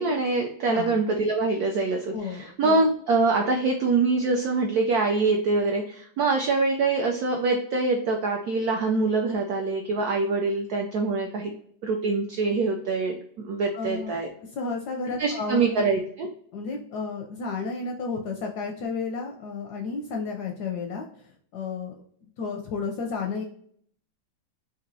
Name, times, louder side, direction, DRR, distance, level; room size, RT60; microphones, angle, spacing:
voice 1, 0.0-11.5 11.8-14.3 15.2-16.3, right 3 dB, 80° right, 2 dB, 0.8 m, -24 dB
voice 2, 2.1-2.5 13.7-14.2 14.5-15.8 16.5-21.0 21.5-21.9 22.4-23.4, left 4 dB, 75° left, 2 dB, 0.9 m, -32 dB
4.0 x 2.6 x 2.6 m, 0.62 s
omnidirectional pair, 2.2 m